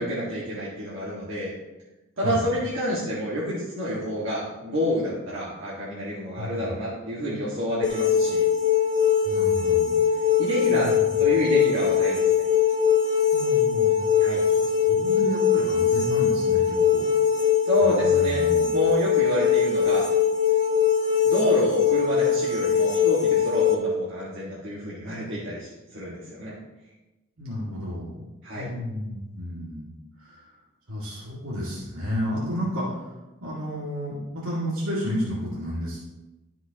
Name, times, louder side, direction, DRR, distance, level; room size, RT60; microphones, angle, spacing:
voice 1, 0.0-1.5 2.2-8.5 10.4-10.9 11.2-12.4 14.2-14.4 17.6-18.4 18.7-20.0 21.2-26.6 28.4-28.7, equal, 60° right, -8 dB, 1.8 m, -28 dB
voice 2, 6.4-6.7 9.2-10.0 10.7-11.1 13.3-17.1 17.8-18.8 27.4-28.2 28.5-29.9 30.2-30.5 30.9-33.0 33.4-36.0, equal, 75° right, -7 dB, 2.2 m, -32 dB
sound 1, 7.8-23.7, left 7 dB, 35° left, 0.9 m, -21 dB
13.0 x 5.8 x 2.9 m, 1.0 s
head